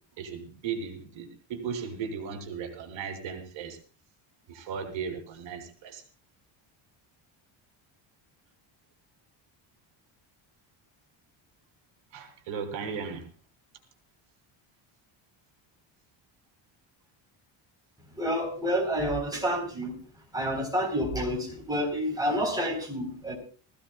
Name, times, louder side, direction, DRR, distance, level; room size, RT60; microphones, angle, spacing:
voice 1, 0.2-3.8 4.5-6.0 12.1-13.3, right 6 dB, 60° right, 6 dB, 3.1 m, -36 dB
voice 2, 18.2-19.9 20.3-23.3, equal, 10° right, 0 dB, 3.9 m, -29 dB
19.5 x 15.5 x 2.3 m, 0.38 s
cardioid pair, 170°, 49 cm